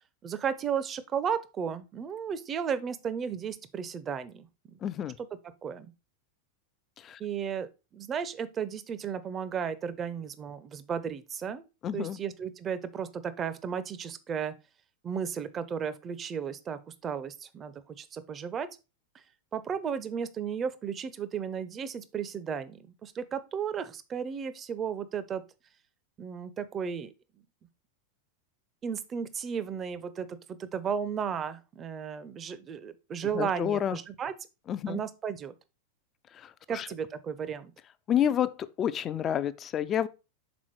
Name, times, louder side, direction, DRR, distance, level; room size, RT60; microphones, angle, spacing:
voice 1, 0.2-4.8 5.2-5.3 5.6-5.9 7.2-11.7 11.9-14.5 15.0-18.7 19.5-25.4 26.2-27.1 28.8-34.3 34.9-35.5 36.7-37.7, right 7 dB, 25° right, 0.6 m, -34 dB
voice 2, 4.8-5.2 7.0-7.2 11.8-12.2 33.3-34.0 34.7-35.0 36.3-36.9 38.1-40.1, left 10 dB, 30° left, 0.4 m, -29 dB
6.1 x 4.1 x 4.3 m
figure-of-eight pair, 90°, 0 cm